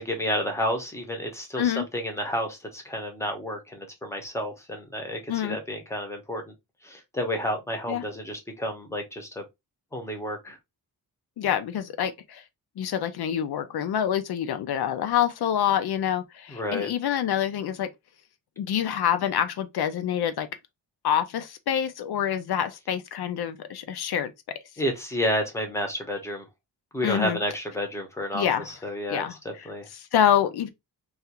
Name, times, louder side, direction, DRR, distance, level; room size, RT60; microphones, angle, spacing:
voice 1, 0.0-6.5 6.8-9.4 9.9-10.6 16.5-16.9 24.8-26.5 26.9-29.9, equal, 5° left, 0.7 m, -31 dB
voice 2, 11.4-12.4 12.8-17.9 18.6-20.5 21.0-24.6 27.0-27.4 28.3-28.7 29.1-29.7 29.9-30.7, left 9 dB, 75° left, 0.5 m, -26 dB
2.4 x 2.4 x 2.8 m
wide cardioid pair, 165°, 39 cm